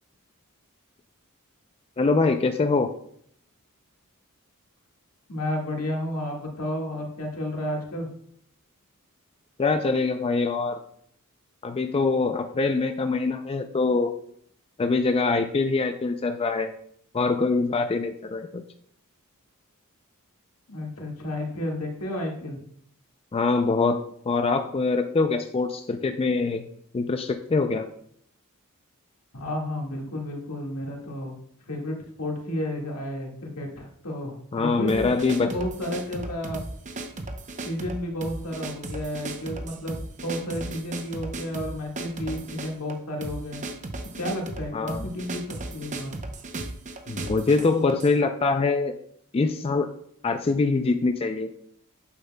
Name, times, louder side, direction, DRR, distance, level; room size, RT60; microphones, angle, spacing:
voice 1, 2.0-2.9 9.6-10.8 11.6-14.1 14.8-16.7 17.1-18.6 23.3-24.0 24.3-26.7 26.9-27.9 34.5-35.5 44.7-45.1 47.1-48.9 49.3-49.9 50.2-51.5, left 3 dB, 25° left, 6 dB, 0.4 m, -24 dB
voice 2, 5.3-8.1 20.7-22.6 29.3-31.4 31.7-35.1 35.4-36.7 37.6-43.6 44.2-46.1, left 1 dB, 85° left, 0 dB, 1.8 m, -32 dB
sound 1, 34.9-48.2, right 2 dB, 35° right, 0.7 m, -36 dB
8.6 x 7.4 x 2.2 m, 0.67 s
head